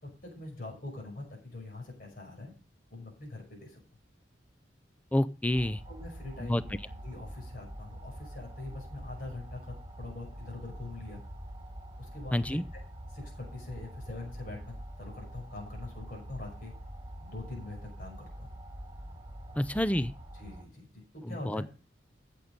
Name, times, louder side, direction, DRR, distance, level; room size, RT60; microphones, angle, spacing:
voice 1, 0.0-2.5 2.9-3.8 5.9-11.2 12.0-12.8 13.1-16.7 17.2-18.5 20.3-21.7, left 2 dB, 45° left, -1 dB, 5.5 m, -43 dB
voice 2, 5.1-5.8 6.4-6.6 12.3-12.6 19.5-20.1 21.2-21.6, left 1 dB, 5° left, 15 dB, 0.5 m, -28 dB
sound 1, 5.5-20.6, equal, 25° right, 2.3 m, -45 dB
14.5 x 6.8 x 5.3 m, 0.33 s
head